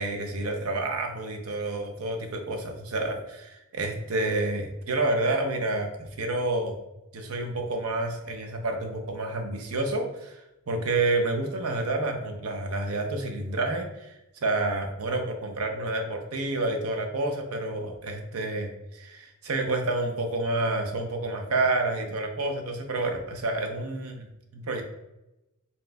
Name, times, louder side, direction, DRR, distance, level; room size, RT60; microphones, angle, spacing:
voice 1, 0.0-6.7 7.1-24.8, right 2 dB, 75° right, 4 dB, 0.6 m, -29 dB
4.2 x 3.8 x 2.3 m, 0.93 s
head